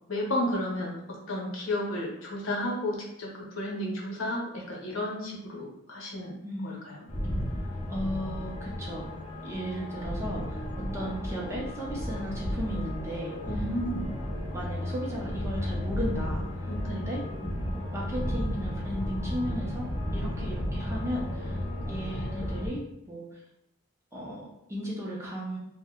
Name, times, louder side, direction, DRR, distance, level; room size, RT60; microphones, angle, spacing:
voice 1, 0.1-6.3 6.6-7.0 13.4-14.0 16.6-17.0, left 1 dB, 65° left, -2 dB, 0.8 m, -32 dB
voice 2, 6.4-6.8 7.6-9.1 9.4-13.6 14.5-17.3 17.9-21.6 21.9-23.4 24.1-25.6, equal, 15° right, -4 dB, 0.5 m, -35 dB
sound 1, 7.1-22.7, equal, 35° left, 0.6 m, -33 dB
2.6 x 2.1 x 3.5 m, 0.81 s
head